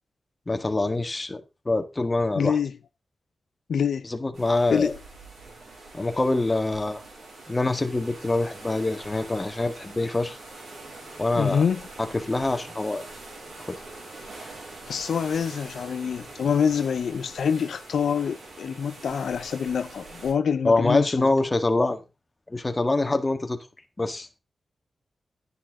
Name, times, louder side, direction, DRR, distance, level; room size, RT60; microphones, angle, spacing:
voice 1, 0.5-2.6 4.1-4.9 5.9-7.0 7.5-10.4 11.2-11.6 12.0-13.0 13.7-13.8 20.6-22.0 22.5-23.6 24.0-24.3, left 2 dB, 30° left, 1.8 m, -25 dB
voice 2, 2.4-2.8 3.7-4.1 4.7-5.0 11.3-11.9 14.9-21.3, left 7 dB, 85° left, 0.6 m, -26 dB
sound 1, 4.3-20.3, right 2 dB, 85° right, 7.0 m, -44 dB
10.0 x 10.0 x 3.7 m
cardioid pair, 60°, 0 cm